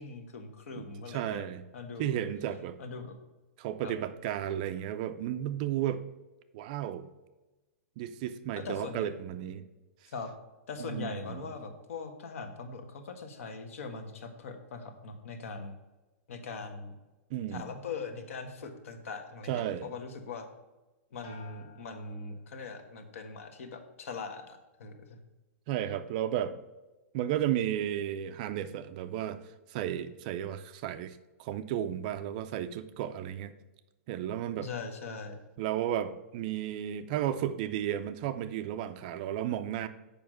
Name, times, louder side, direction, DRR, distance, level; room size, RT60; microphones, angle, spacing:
voice 1, 0.0-1.5 1.7-2.2 2.8-3.1 3.8-3.9 8.5-9.0 10.1-10.3 10.7-15.7 16.3-16.9 17.5-20.5 21.1-25.2 34.6-35.4, left 4 dB, 65° left, 6 dB, 1.4 m, -41 dB
voice 2, 0.8-1.6 2.0-2.8 3.6-6.0 6.5-7.1 8.0-9.6 10.8-11.4 17.3-17.6 19.5-19.9 25.7-26.5 27.1-29.4 29.7-33.5 34.1-34.7 35.6-39.9, right 11 dB, 35° right, 12 dB, 0.4 m, -33 dB
sound 1, 21.2-23.0 23.4-23.9, left 4 dB, 35° left, 1.5 m, -56 dB
7.1 x 5.2 x 6.2 m, 1.1 s
hypercardioid pair, 165°, 8 cm